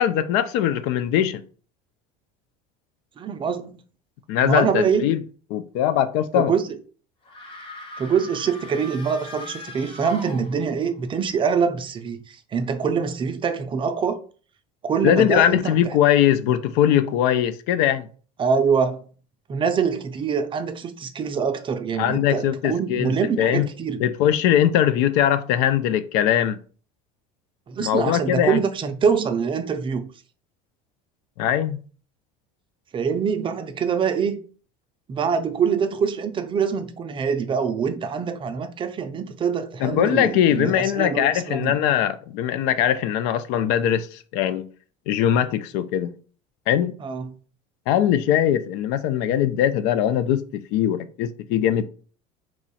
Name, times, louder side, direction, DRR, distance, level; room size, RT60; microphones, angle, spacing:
voice 1, 0.0-1.4 4.3-5.2 5.5-6.5 15.0-18.1 22.0-23.7 24.0-26.6 27.8-28.6 31.4-31.8 39.8-44.6 45.1-46.1 46.7-46.9 47.9-50.4 50.7-51.8, left 10 dB, 70° left, 0.4 m, -21 dB
voice 2, 3.2-3.7 4.4-5.1 6.3-6.8 8.0-14.2 14.8-16.0 18.4-19.0 19.5-24.0 27.7-30.1 32.9-34.4 35.1-41.8 47.0-47.3, right 6 dB, 30° right, 0.4 m, -24 dB
sound 1, 7.2-10.9, left 2 dB, 30° left, 1.0 m, -40 dB
3.0 x 2.3 x 4.1 m
supercardioid pair, 110°, 18 cm